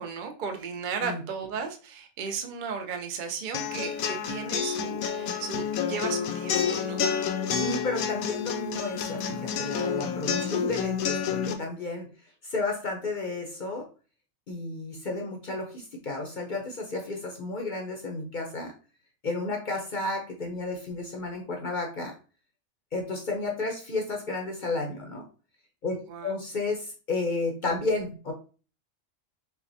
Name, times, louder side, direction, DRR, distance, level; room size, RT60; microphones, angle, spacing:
voice 1, 0.0-7.0 26.1-26.3, right 6 dB, 60° right, 4 dB, 0.5 m, -35 dB
sound 1, 3.5-11.5, left 7 dB, 80° left, 1.0 m, -29 dB
voice 2, 7.0-12.1 12.4-13.9 14.5-18.7 19.2-22.1 22.9-25.2 25.8-25.9 26.2-28.3, left 3 dB, 50° left, 1 dB, 0.6 m, -32 dB
5.7 x 2.2 x 2.6 m, 0.36 s
omnidirectional pair, 1.5 m